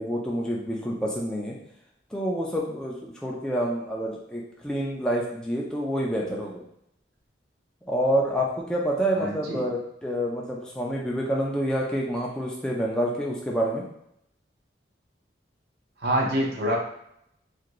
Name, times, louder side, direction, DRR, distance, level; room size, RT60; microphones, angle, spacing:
voice 1, 0.0-1.6 2.1-6.6 7.9-13.8, equal, 5° left, -4 dB, 0.3 m, -28 dB
voice 2, 9.2-9.6 16.0-16.8, equal, 60° right, -1 dB, 0.6 m, -25 dB
2.6 x 2.5 x 2.9 m, 0.74 s
head